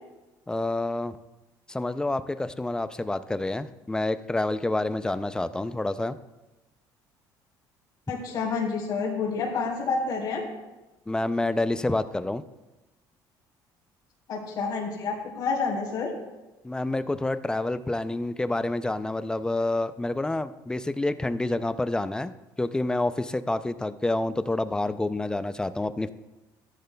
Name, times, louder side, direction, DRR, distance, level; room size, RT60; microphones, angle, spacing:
voice 1, 0.5-1.2 1.7-6.2 11.1-12.4 16.6-26.1, left 2 dB, 10° left, 13 dB, 0.4 m, -28 dB
voice 2, 8.1-10.4 14.3-16.1, left 4 dB, 55° left, -5 dB, 3.1 m, -29 dB
14.0 x 10.0 x 2.3 m, 1.1 s
cardioid pair, 110°, 8 cm